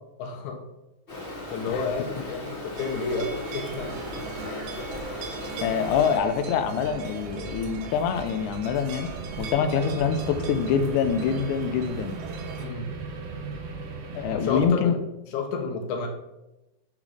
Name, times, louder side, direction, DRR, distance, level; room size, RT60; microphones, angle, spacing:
voice 1, 0.2-0.6 1.5-3.9 9.5-9.7 12.6-12.9 14.3-15.0 15.3-16.1, left 4 dB, 70° left, 4 dB, 2.1 m, -30 dB
Stream, 1.1-6.2, left 1 dB, 25° left, 1.1 m, -37 dB
sound 1, 2.8-12.7, right 5 dB, 90° right, 2.8 m, -40 dB
sound 2, 3.8-14.7, right 4 dB, 75° right, 1.3 m, -38 dB
voice 2, 5.6-9.1 9.4-12.2 14.1-15.0, left 7 dB, 90° left, 8 dB, 1.7 m, -25 dB
6.8 x 5.9 x 4.0 m, 0.95 s
omnidirectional pair, 4.2 m